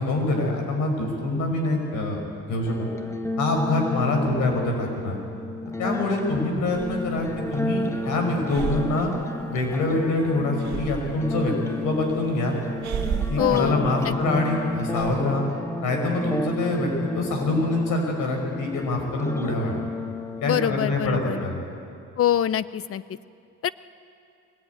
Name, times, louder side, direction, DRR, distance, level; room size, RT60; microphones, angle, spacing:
voice 1, 0.0-2.2 2.5-2.9 3.4-5.2 5.8-9.1 9.5-11.5 11.8-12.6 13.3-15.4 15.8-19.8 20.4-21.6, left 2 dB, 85° left, 3 dB, 5.4 m, -25 dB
sound 1, 2.6-21.6, left 2 dB, 10° left, 1.3 m, -32 dB
Breathing, 6.7-15.2, right 7 dB, 65° right, 1.9 m, -36 dB
voice 2, 13.4-14.4 20.4-21.4 22.2-23.2 23.6-23.7, left 10 dB, 50° left, 17 dB, 0.7 m, -25 dB
22.5 x 19.5 x 9.5 m, 2.5 s
cardioid pair, 90°, 30 cm